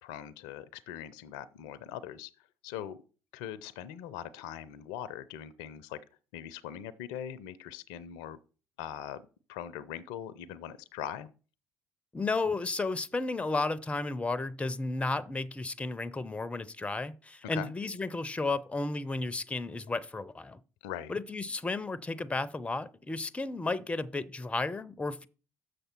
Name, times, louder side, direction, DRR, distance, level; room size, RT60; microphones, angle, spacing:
voice 1, 0.0-2.3 2.6-3.0 3.3-6.0 6.3-8.4 8.8-11.3 17.4-17.7 20.8-21.1, left 10 dB, 70° left, 0.4 m, -41 dB
voice 2, 12.1-20.6 21.1-25.3, left 3 dB, 15° left, 0.5 m, -33 dB
6.7 x 6.4 x 4.4 m
figure-of-eight pair, 50°, 8 cm